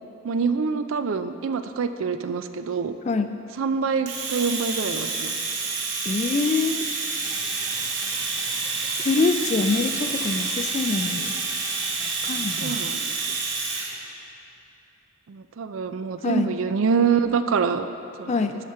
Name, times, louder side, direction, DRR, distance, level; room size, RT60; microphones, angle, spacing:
voice 1, 0.2-2.9 3.6-5.3 12.6-13.1 15.3-18.5, right 5 dB, 85° right, 10 dB, 0.4 m, -25 dB
Domestic sounds home sounds, 4.1-13.9, right 4 dB, 65° right, 0.9 m, -28 dB
voice 2, 6.0-6.9 9.0-11.3 12.2-12.8 16.2-16.5 18.3-18.6, left 4 dB, 35° left, 8 dB, 0.3 m, -25 dB
sound 1, 7.2-13.6, right 1 dB, 15° right, 0.5 m, -43 dB
12.5 x 5.0 x 4.3 m, 2.6 s
head